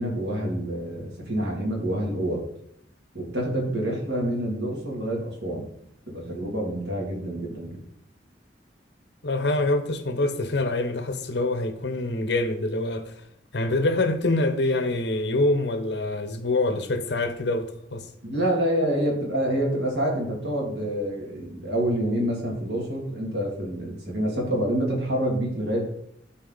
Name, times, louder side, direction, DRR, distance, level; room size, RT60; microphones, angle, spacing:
voice 1, 0.0-2.4 3.1-5.7 6.1-7.8 18.2-25.9, right 1 dB, 70° right, 2.6 m, -27 dB
voice 2, 9.2-13.2 13.5-18.1, left 2 dB, 70° left, 0.9 m, -25 dB
12.0 x 4.3 x 4.0 m
head